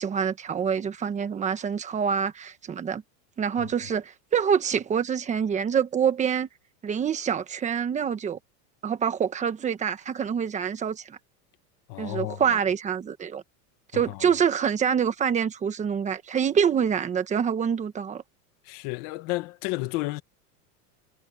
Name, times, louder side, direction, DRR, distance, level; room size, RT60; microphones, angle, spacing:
voice 1, 0.0-3.0 3.4-6.5 6.8-8.4 8.8-11.2 12.0-13.4 13.9-18.2, right 7 dB, 15° right, 1.2 m, -26 dB
voice 2, 11.9-12.6 13.9-14.3 18.6-20.2, left 20 dB, 45° left, 1.7 m, -32 dB
supercardioid pair, 170°, 45 cm